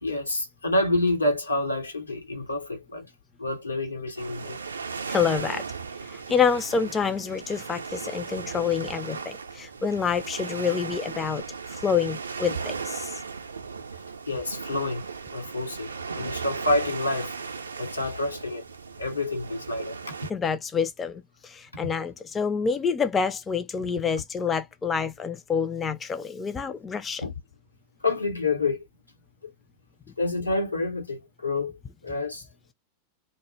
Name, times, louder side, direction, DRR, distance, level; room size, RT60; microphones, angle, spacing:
voice 1, 0.0-3.1 3.4-4.6 14.3-17.4 17.8-18.6 19.0-20.1 27.2-27.3 28.0-28.8 29.4-29.5 30.2-32.4, left 2 dB, 80° left, 0.8 m, -28 dB
sound 1, 4.2-20.3, right 5 dB, 75° right, 0.4 m, -37 dB
voice 2, 5.1-5.7 6.0-13.2 20.3-27.2, left 6 dB, 20° left, 0.3 m, -27 dB
2.1 x 2.0 x 3.1 m
figure-of-eight pair, 90°, 0 cm